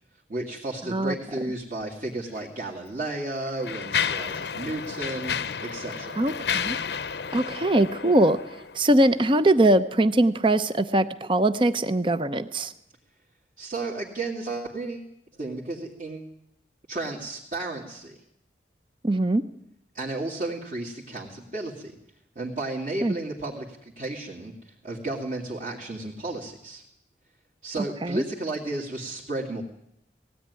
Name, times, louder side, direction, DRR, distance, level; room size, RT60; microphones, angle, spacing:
voice 1, 0.3-6.2 13.6-15.1 15.4-16.3 16.9-18.2 19.9-22.0 22.4-26.8 27.6-29.6, right 2 dB, 45° right, -4 dB, 2.5 m, -33 dB
Mechanisms, 2.3-2.4 3.2-8.9, left 7 dB, 75° left, 0.8 m, -31 dB
voice 2, 6.2-6.8 7.3-8.4 8.7-12.7 19.0-19.4 23.0-23.1 28.0-28.2, right 1 dB, 30° right, 12 dB, 0.7 m, -21 dB
19.0 x 16.5 x 9.7 m, 0.79 s
head